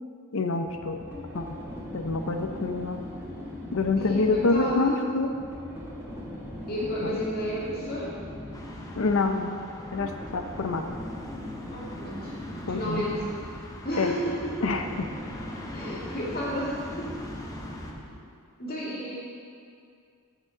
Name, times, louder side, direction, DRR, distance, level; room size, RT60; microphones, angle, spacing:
voice 1, 0.3-1.0 1.3-1.5 1.9-3.0 3.7-5.3 7.0-7.2 9.0-9.6 9.9-11.0 12.7-13.1 14.0-14.1 14.6-14.9, left 3 dB, 60° left, 5 dB, 0.6 m, -26 dB
sound 1, 0.7-18.3, left 1 dB, 10° right, 1.5 m, -40 dB
voice 2, 4.0-5.0 6.7-8.2 11.7-12.3 12.7-13.3 13.8-14.6 15.7-17.3 18.6-19.2, equal, 45° left, -6 dB, 2.3 m, -32 dB
sound 2, 8.5-17.9, left 1 dB, 15° left, 0.6 m, -44 dB
6.6 x 6.2 x 7.1 m, 2.3 s
head